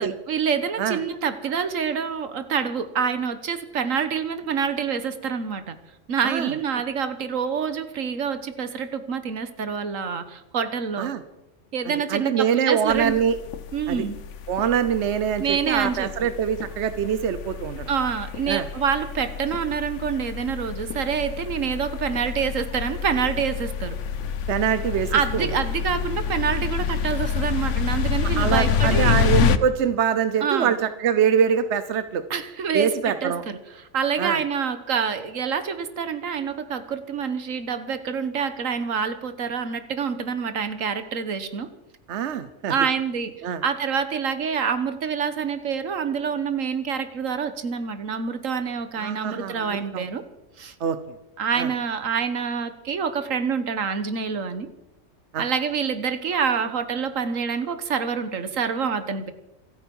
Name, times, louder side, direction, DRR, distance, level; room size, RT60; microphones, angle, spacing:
voice 1, 0.0-5.8 6.1-11.1 11.7-13.2 13.7-14.2 15.4-16.3 17.9-24.0 25.1-29.2 30.4-30.8 32.3-41.7 42.7-50.2 50.6-50.7 51.4-54.7 55.4-59.3, right 6 dB, 85° right, 11 dB, 1.6 m, -27 dB
voice 2, 11.9-13.4 13.9-14.0 14.5-17.9 18.5-18.7 24.5-25.5 28.4-32.2 32.7-33.4 34.2-34.4 42.1-42.7 43.4-43.6 49.0-50.0 50.8-51.0 51.6-51.7 55.3-55.5, right 8 dB, 65° right, 12 dB, 1.1 m, -24 dB
sound 1, 12.9-29.6, left 7 dB, 70° left, 1.1 m, -27 dB
26.5 x 9.2 x 5.5 m, 0.96 s
omnidirectional pair, 1.3 m